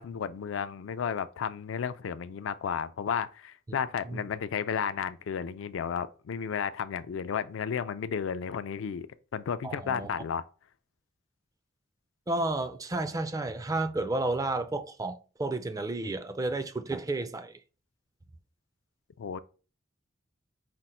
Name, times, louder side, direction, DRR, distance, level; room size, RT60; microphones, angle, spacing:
voice 1, 0.0-9.1 9.3-10.4 19.2-19.4, left 7 dB, 70° left, 0.4 m, -33 dB
voice 2, 9.6-10.1 12.3-17.6, right 2 dB, 20° right, 0.3 m, -31 dB
5.1 x 2.1 x 4.3 m
head